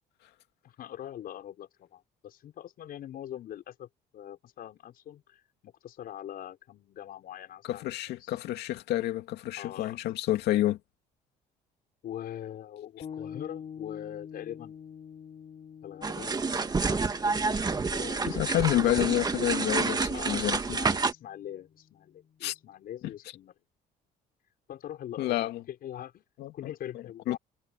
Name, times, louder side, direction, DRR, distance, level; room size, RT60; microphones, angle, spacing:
voice 1, 0.6-7.8 8.2-8.4 9.6-10.0 12.0-14.8 15.8-16.4 16.8-18.8 20.1-23.5 24.7-25.4 25.7-26.2 26.5-27.4, left 11 dB, 60° left, 5.9 m, -43 dB
voice 2, 7.7-10.8 18.3-20.8 22.4-22.5 23.0-23.1 25.2-25.6 26.4-26.7 27.3-27.4, left 14 dB, 80° left, 2.4 m, -29 dB
sound 1, 13.0-22.7, left 7 dB, 45° left, 5.8 m, -48 dB
sound 2, 16.0-21.1, right 4 dB, 25° right, 1.9 m, -29 dB
cardioid pair, 110°, 17 cm